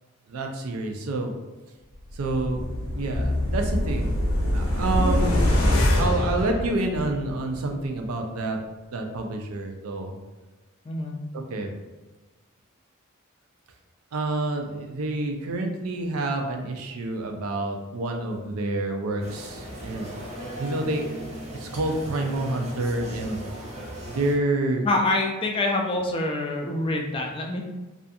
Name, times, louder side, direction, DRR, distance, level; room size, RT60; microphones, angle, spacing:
voice 1, 0.3-1.3 2.1-2.6 2.9-4.2 4.5-5.4 5.9-8.6 8.9-10.2 11.3-11.7 14.1-20.1 20.6-23.4 24.1-24.9, right 2 dB, 85° right, 3 dB, 0.4 m, -28 dB
sound 1, 2.1-7.3 7.7-7.8, left 1 dB, 70° left, 0.6 m, -24 dB
voice 2, 10.9-11.2 24.8-27.6, left 2 dB, 25° left, 1 dB, 0.3 m, -26 dB
sound 2, 19.2-24.3, equal, 30° right, 0.6 m, -37 dB
2.5 x 2.3 x 2.6 m, 1.2 s
head